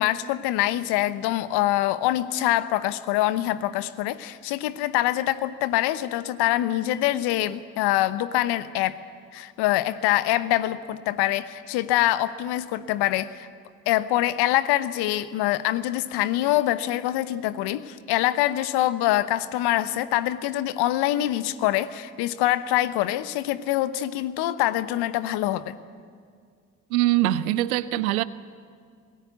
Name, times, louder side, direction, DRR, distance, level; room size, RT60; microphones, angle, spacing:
voice 1, 0.0-9.0 9.3-13.5 13.9-25.7, left 14 dB, 65° left, 14 dB, 1.0 m, -24 dB
voice 2, 26.9-28.2, right 15 dB, 80° right, 17 dB, 0.7 m, -22 dB
26.5 x 18.5 x 8.2 m, 2.1 s
figure-of-eight pair, 45°, 42 cm